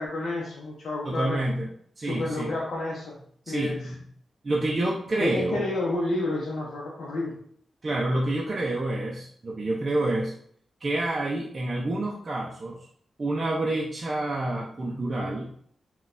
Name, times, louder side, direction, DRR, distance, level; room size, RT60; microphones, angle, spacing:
voice 1, 0.0-1.4 2.0-3.2 3.5-3.9 5.2-7.3, left 2 dB, 70° left, -5 dB, 0.6 m, -30 dB
voice 2, 1.0-1.7 2.0-2.5 3.5-4.0 4.4-5.6 7.8-10.3 10.8-12.9 13.2-15.5, right 2 dB, 35° right, -3 dB, 0.4 m, -28 dB
3.9 x 2.3 x 2.5 m, 0.62 s
wide cardioid pair, 125°, 0 cm